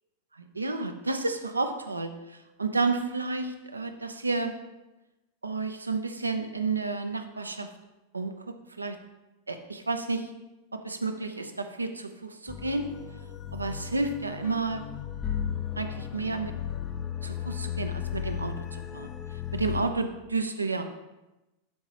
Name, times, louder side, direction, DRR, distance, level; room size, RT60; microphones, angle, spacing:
voice 1, 0.5-4.5 5.4-7.7 8.1-9.0 9.5-10.3 10.7-12.9 13.5-14.8 15.8-16.5 17.2-19.1 19.5-20.8, right 3 dB, 80° right, 7 dB, 0.6 m, -31 dB
sound 1, 12.5-19.8, left 9 dB, 25° left, 0.5 m, -35 dB
11.5 x 4.8 x 2.9 m, 1.0 s
figure-of-eight pair, 90°, 0 cm